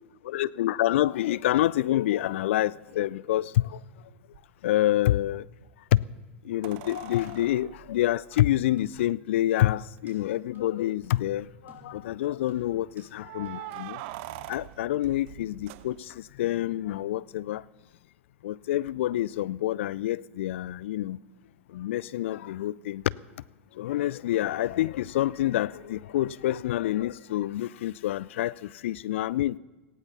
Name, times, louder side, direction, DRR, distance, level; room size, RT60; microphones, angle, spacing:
voice 1, 0.2-3.8 4.6-5.5 5.9-6.0 6.4-14.0 14.5-17.6 18.4-21.2 21.7-23.0 23.7-29.6, left 14 dB, 65° left, 0.4 m, -27 dB
sound 1, 4.3-4.4 6.6-9.0 10.0-10.1 10.4-10.5 11.0-11.5 13.2-16.4 18.9-19.0, right 15 dB, 55° right, 0.7 m, -43 dB
sound 2, 8.8-9.2 9.6-10.3 10.6-10.7 11.0-11.2 11.7-12.1 12.5-13.2 13.5-13.6, right 3 dB, 25° right, 3.9 m, -55 dB
18.0 x 17.0 x 4.1 m
figure-of-eight pair, 90°, 7 cm